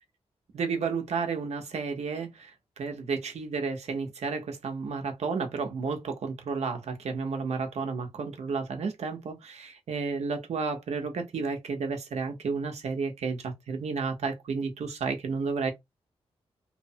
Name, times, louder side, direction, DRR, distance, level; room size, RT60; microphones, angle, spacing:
voice 1, 0.5-15.7, right 5 dB, 85° right, 0.9 m, -32 dB
3.1 x 2.1 x 2.8 m
wide cardioid pair, 135°, 11 cm